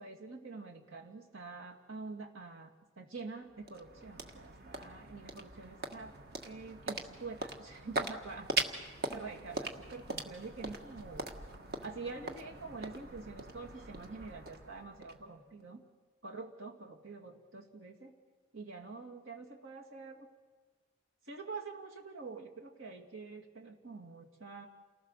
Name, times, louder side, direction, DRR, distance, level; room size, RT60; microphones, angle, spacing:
voice 1, 0.0-6.1 6.4-8.5 9.1-11.3 11.8-15.8 16.2-18.1 18.5-20.3 21.3-24.7, right 4 dB, 80° right, 2 dB, 2.6 m, -46 dB
sound 1, 3.2-15.6, right 3 dB, 50° right, 1.6 m, -41 dB
28.5 x 19.5 x 6.7 m, 1.4 s
head